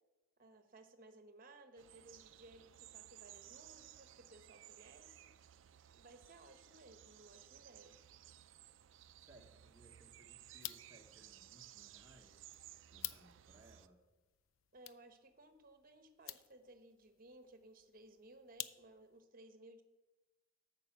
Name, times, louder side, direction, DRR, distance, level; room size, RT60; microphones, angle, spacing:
voice 1, 0.4-5.3 5.9-8.0 14.7-19.8, right 2 dB, 45° right, 8 dB, 1.0 m, -60 dB
sound 1, 1.8-13.9, right 12 dB, 70° right, 0.4 m, -59 dB
voice 2, 9.2-12.5 12.9-14.0, right 1 dB, 15° right, -2 dB, 1.0 m, -64 dB
sound 2, 10.5-19.2, left 14 dB, 85° left, 0.4 m, -52 dB
9.0 x 5.6 x 7.1 m, 1.1 s
head